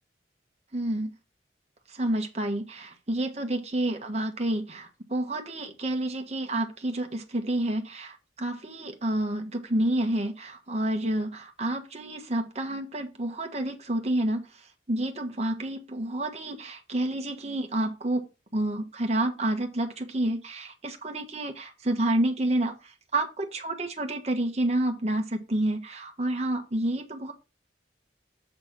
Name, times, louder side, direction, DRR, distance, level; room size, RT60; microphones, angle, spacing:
voice 1, 0.7-1.1 1.9-18.3 18.5-27.3, right 1 dB, 35° right, 4 dB, 1.2 m, -29 dB
7.9 x 3.4 x 5.8 m, 0.28 s
head